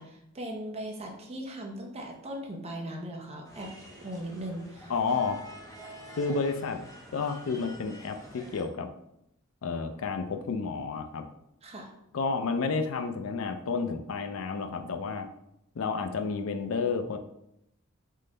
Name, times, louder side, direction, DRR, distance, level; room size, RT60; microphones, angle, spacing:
voice 1, 0.0-4.9 11.6-11.9, right 1 dB, 30° right, 1 dB, 0.7 m, -39 dB
sound 1, 3.4-8.6, equal, 15° left, 0.9 m, -48 dB
voice 2, 4.9-5.4 6.2-6.8 7.1-8.9 9.6-11.2 12.1-15.3 15.8-17.2, left 4 dB, 70° left, 7 dB, 0.4 m, -31 dB
3.7 x 3.2 x 3.8 m, 0.80 s
head